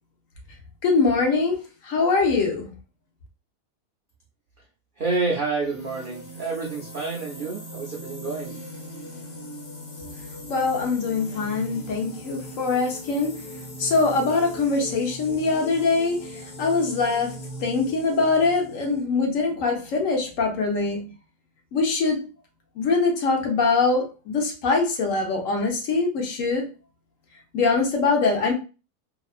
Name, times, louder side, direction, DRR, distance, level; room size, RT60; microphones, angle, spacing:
voice 1, 0.8-2.7 10.5-13.4 13.8-16.2 16.6-21.0 21.7-22.2 22.8-26.7 27.5-28.5, left 4 dB, 65° left, 1.0 m, -23 dB
voice 2, 5.0-8.6, right 3 dB, 80° right, 0.4 m, -28 dB
sound 1, 5.6-19.0, equal, 85° left, 1.5 m, -40 dB
2.7 x 2.4 x 2.4 m
omnidirectional pair, 1.6 m